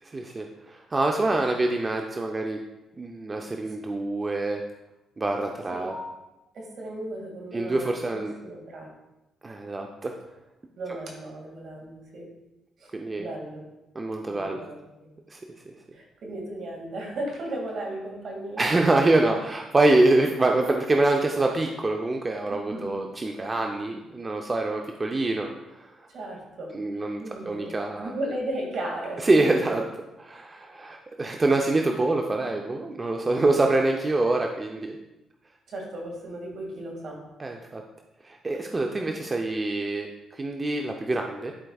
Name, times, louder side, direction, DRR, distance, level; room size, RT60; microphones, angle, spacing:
voice 1, 0.1-2.6 3.0-4.6 5.2-5.9 7.5-8.3 9.4-10.1 12.9-13.3 14.0-14.6 15.3-15.4 15.7-15.8 18.6-25.5 25.8-25.9 26.7-28.1 29.2-29.8 30.3-35.0 37.4-37.8 38.2-41.5, right 2 dB, 25° right, 2 dB, 0.5 m, -25 dB
voice 2, 5.5-6.1 6.5-8.9 10.8-12.3 12.8-13.6 14.3-14.8 15.9-18.7 22.5-23.0 26.1-29.8 35.7-37.2 38.5-38.6 39.1-39.2, right 1 dB, 60° right, -1 dB, 2.0 m, -36 dB
11.0 x 4.6 x 2.3 m, 0.98 s
cardioid pair, 90°, 0 cm